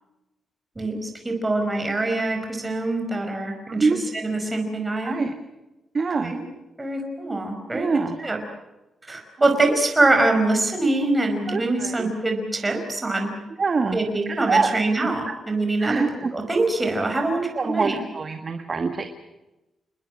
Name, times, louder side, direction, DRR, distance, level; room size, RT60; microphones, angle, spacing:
voice 1, 0.7-3.9 4.1-5.2 6.2-6.4 6.8-8.4 9.1-13.3 13.9-16.0 16.3-18.0, right 2 dB, 15° right, 4 dB, 5.1 m, -24 dB
voice 2, 3.7-4.0 5.0-5.3 5.9-6.3 7.7-8.2 11.5-12.1 13.6-14.0 14.3-14.7 15.8-16.3 17.5-19.1, right 4 dB, 30° right, 6 dB, 1.7 m, -24 dB
29.0 x 21.0 x 6.4 m, 1.0 s
wide cardioid pair, 155°, 0 cm